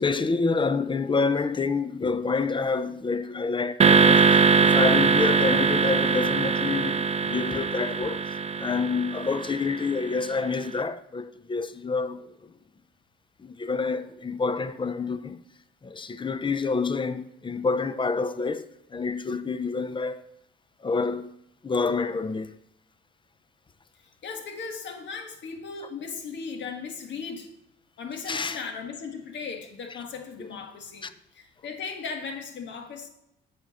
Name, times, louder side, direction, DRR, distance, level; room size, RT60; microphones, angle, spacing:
voice 1, 0.0-8.2 8.6-12.5 13.4-15.4 15.8-20.2 20.8-21.4 21.6-22.5 28.3-28.6 29.9-30.0 30.4-30.5 31.0-31.1, left 4 dB, 25° left, 0.5 m, -28 dB
sound 1, 3.8-10.2, right 5 dB, 35° right, 0.5 m, -22 dB
voice 2, 24.2-27.5 28.0-31.1 31.3-33.1, left 5 dB, 65° left, 1.5 m, -37 dB
7.8 x 7.4 x 4.1 m
cardioid pair, 90°, 20 cm